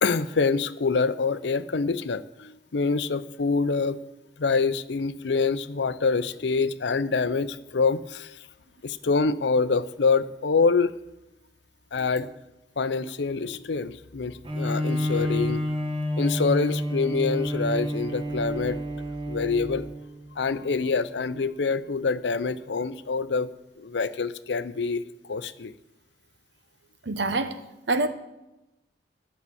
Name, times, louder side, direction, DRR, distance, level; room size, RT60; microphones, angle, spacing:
voice 1, 0.0-4.0 4.4-8.5 8.8-10.9 11.9-12.3 12.8-15.6 16.2-18.8 19.3-19.9 20.4-23.5 23.8-25.7, left 4 dB, 75° left, 14 dB, 0.6 m, -26 dB
Bowed string instrument, 14.4-20.1, equal, 30° right, 1.3 m, -29 dB
voice 2, 27.0-27.6 27.9-28.1, right 2 dB, 75° right, 10 dB, 1.0 m, -25 dB
11.0 x 6.7 x 8.5 m, 0.94 s
head